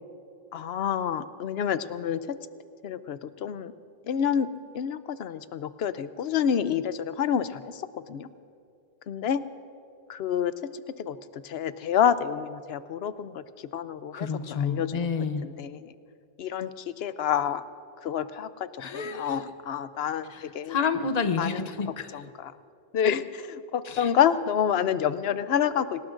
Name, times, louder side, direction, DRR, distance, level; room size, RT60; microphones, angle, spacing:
voice 1, 0.5-2.4 2.8-3.7 4.1-4.5 4.7-8.3 9.1-9.4 10.1-10.5 11.0-13.4 13.7-15.1 15.4-15.9 16.4-17.7 18.0-20.8 21.4-21.7 22.1-22.5 22.9-26.0, left 8 dB, 85° left, 13 dB, 0.9 m, -28 dB
voice 2, 14.1-15.5 18.8-19.5 20.3-22.1 23.8-24.1, left 5 dB, 45° left, 9 dB, 0.9 m, -30 dB
27.0 x 19.0 x 2.5 m, 2.5 s
omnidirectional pair, 1.0 m